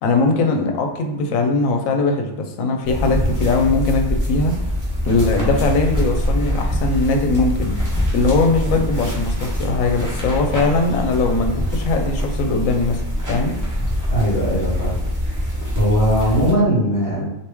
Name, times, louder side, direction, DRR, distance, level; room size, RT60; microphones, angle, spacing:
voice 1, 0.0-4.6 5.0-7.7 8.1-13.0 13.3-13.5, left 3 dB, 80° left, 4 dB, 1.0 m, -20 dB
sound 1, 2.8-16.5, equal, 20° right, 0.6 m, -23 dB
voice 2, 14.1-15.0 15.7-17.2, equal, 40° left, -7 dB, 1.6 m, -19 dB
3.0 x 2.6 x 3.4 m, 0.91 s
omnidirectional pair, 1.4 m